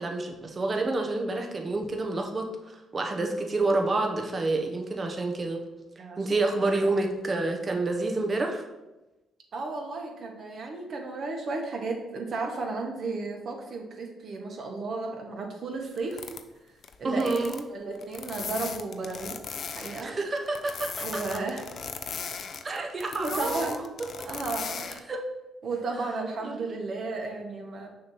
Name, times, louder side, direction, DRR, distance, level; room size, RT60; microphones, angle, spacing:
voice 1, 0.0-5.6 6.2-8.6 17.0-17.6 20.0-21.4 22.6-23.8 25.1-25.2 26.4-26.8, right 2 dB, 30° right, 2 dB, 0.8 m, -28 dB
voice 2, 9.5-16.2 17.0-17.4 17.7-19.4 19.7-20.1 21.0-21.6 22.7-22.8 23.1-23.8 24.2-24.9 25.6-27.9, right 3 dB, 55° right, 1 dB, 1.3 m, -33 dB
sound 1, 16.0-16.4 16.8-17.0 17.2-17.6 18.0-20.1 20.4-25.0, left 6 dB, 55° left, 0.5 m, -37 dB
6.3 x 3.0 x 5.5 m, 1.0 s
cardioid pair, 90°, 0 cm